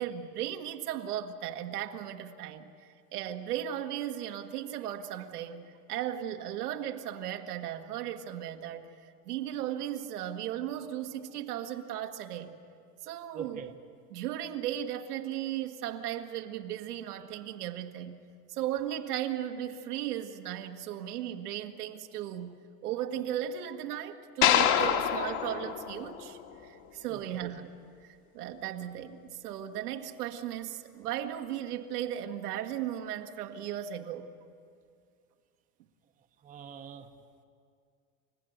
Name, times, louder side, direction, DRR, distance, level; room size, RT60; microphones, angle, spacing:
voice 1, 0.0-12.6 13.0-13.7 14.1-18.2 18.5-27.7 28.0-34.3, right 11 dB, 75° right, 5 dB, 1.7 m, -36 dB
voice 2, 13.3-13.7 27.1-27.4 36.4-37.1, right 7 dB, 15° right, 6 dB, 0.9 m, -42 dB
sound 1, 24.4-26.8, left 10 dB, 50° left, 1.8 m, -27 dB
29.0 x 15.0 x 7.9 m, 2.3 s
supercardioid pair, 135°, 46 cm